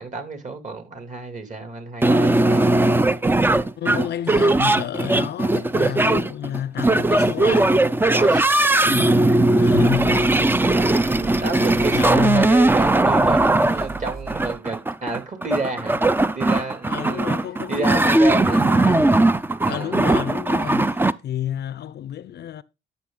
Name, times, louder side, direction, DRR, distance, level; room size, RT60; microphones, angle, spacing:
voice 1, 0.0-2.8 8.1-8.4 9.7-10.9 11.2-16.0 16.3-17.3 17.7-18.7 19.6-19.9, right 3 dB, 40° right, 2.7 m, -30 dB
sound 1, 2.0-21.1, right 2 dB, 10° right, 0.5 m, -19 dB
voice 2, 3.8-7.8 8.8-10.4 11.5-12.5 16.9-19.3 19.6-22.6, left 11 dB, 60° left, 0.5 m, -30 dB
sound 2, 9.6-14.5, right 3 dB, 55° right, 5.0 m, -38 dB
11.5 x 6.3 x 3.8 m
cardioid pair, 90°, 20 cm